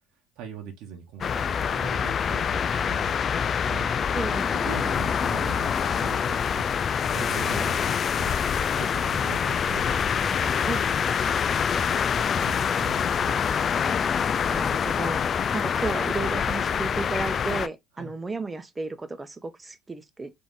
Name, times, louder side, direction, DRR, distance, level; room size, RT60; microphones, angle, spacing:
voice 1, 0.4-3.2 3.7-3.9 4.5-6.7 7.1-8.4 8.8-10.7 11.7-14.0 18.0-18.1, right 8 dB, 75° right, 1.3 m, -41 dB
sound 1, 1.2-17.7, left 7 dB, 45° left, 0.3 m, -25 dB
voice 2, 4.1-4.5 10.7-10.9 14.5-20.3, right 3 dB, 20° right, 0.8 m, -33 dB
4.2 x 2.9 x 3.6 m
supercardioid pair, 90°, 0 cm